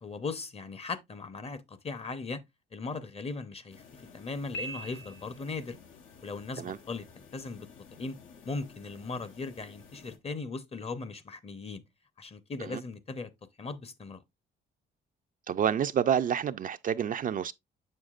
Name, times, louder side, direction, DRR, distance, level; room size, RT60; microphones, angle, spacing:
voice 1, 0.0-2.4 2.7-5.8 6.2-7.7 8.0-8.2 8.5-11.8 12.2-13.3 13.6-14.2, left 4 dB, 30° left, 0.7 m, -38 dB
sound 1, 3.7-10.2, left 6 dB, 80° left, 1.1 m, -54 dB
Piano, 4.5-5.7, right 2 dB, 60° left, 1.1 m, -41 dB
voice 2, 15.5-17.5, right 8 dB, 45° right, 0.4 m, -28 dB
6.9 x 6.5 x 2.4 m
cardioid pair, 90°, 20 cm